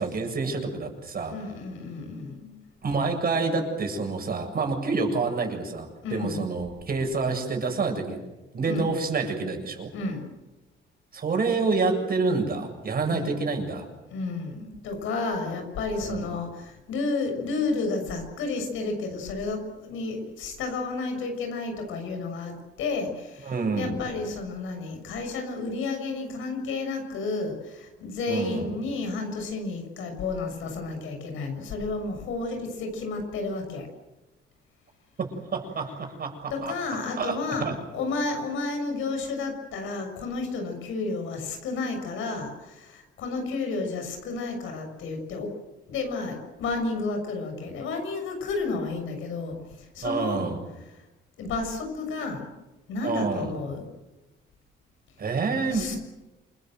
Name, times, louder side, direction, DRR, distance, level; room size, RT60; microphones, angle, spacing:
voice 1, 0.0-1.3 2.8-8.2 8.5-9.9 11.1-13.9 16.0-16.3 23.4-24.0 28.3-28.7 35.2-37.8 50.0-50.6 53.0-53.5 55.2-56.0, right 4 dB, 50° right, 4 dB, 7.7 m, -28 dB
voice 2, 1.3-2.6 6.0-6.4 8.6-8.9 9.9-10.3 13.1-13.3 14.1-23.5 23.8-33.9 36.5-45.5 45.9-50.5 51.4-52.5 52.9-53.8 55.7-56.0, left 3 dB, 85° left, 4 dB, 6.7 m, -31 dB
28.5 x 22.0 x 7.8 m, 1.0 s
cardioid pair, 90°, 20 cm